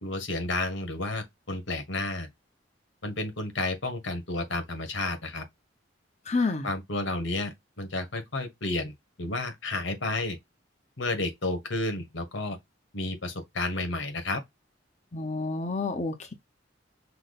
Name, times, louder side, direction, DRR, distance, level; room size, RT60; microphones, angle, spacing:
voice 1, 0.0-2.3 3.0-5.4 6.6-10.4 11.0-12.6 12.9-14.4, left 2 dB, 90° left, 1.6 m, -31 dB
voice 2, 6.3-6.7 15.1-16.3, left 3 dB, 40° left, 0.8 m, -29 dB
5.8 x 2.2 x 4.1 m
head